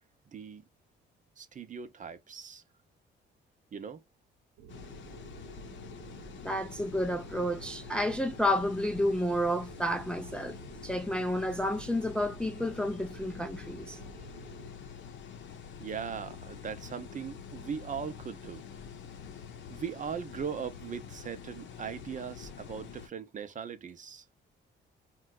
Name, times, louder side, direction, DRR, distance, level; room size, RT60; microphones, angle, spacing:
voice 1, 0.3-0.6 1.4-2.6 3.7-4.0 15.8-18.6 19.7-24.3, right 7 dB, 40° right, 0.6 m, -39 dB
sound 1, 4.6-14.7, right 7 dB, 85° right, 0.8 m, -51 dB
sound 2, 4.7-23.1, left 7 dB, 70° left, 0.7 m, -46 dB
voice 2, 6.4-10.6 10.8-14.0, left 1 dB, 5° left, 0.4 m, -30 dB
3.9 x 2.3 x 2.2 m
cardioid pair, 90°, 20 cm